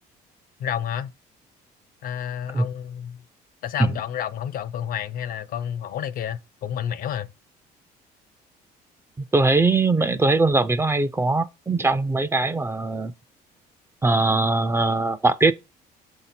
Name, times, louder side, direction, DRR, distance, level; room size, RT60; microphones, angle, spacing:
voice 1, 0.6-1.1 2.0-3.2 3.6-7.3, left 9 dB, 55° left, 0.4 m, -30 dB
voice 2, 9.3-13.1 14.0-15.5, right 3 dB, 15° right, 0.4 m, -21 dB
7.1 x 2.8 x 5.7 m
cardioid pair, 110°, 17 cm